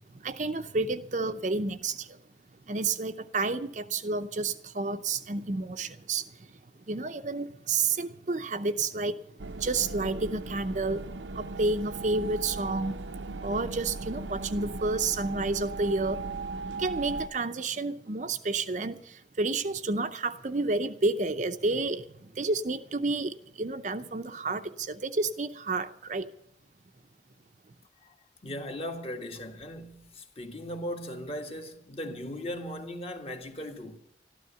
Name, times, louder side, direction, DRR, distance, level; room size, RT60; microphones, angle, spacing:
voice 1, 0.1-2.2 2.7-6.5 6.9-13.1 13.4-16.2 16.8-26.3, right 3 dB, 40° right, 0.6 m, -30 dB
sound 1, 9.4-17.3, right 3 dB, 85° right, 0.7 m, -37 dB
voice 2, 28.4-34.0, equal, 35° left, 1.6 m, -38 dB
13.0 x 12.5 x 6.9 m
head